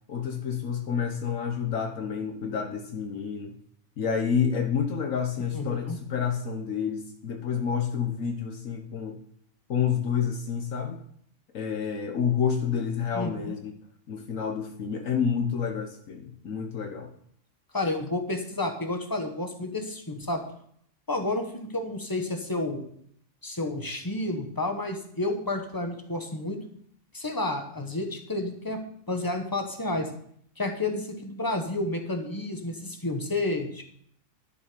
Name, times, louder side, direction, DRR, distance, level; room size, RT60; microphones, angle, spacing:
voice 1, 0.1-3.5 4.0-9.2 9.7-11.0 11.5-13.7 14.1-17.1, left 7 dB, 70° left, 4 dB, 1.4 m, -29 dB
voice 2, 5.5-6.0 13.1-13.5 17.7-20.4 21.1-22.8 23.4-26.6 27.1-28.8 29.1-30.1 30.6-33.8, left 2 dB, 15° left, 4 dB, 1.4 m, -30 dB
12.0 x 7.0 x 5.2 m, 0.65 s
omnidirectional pair, 1.4 m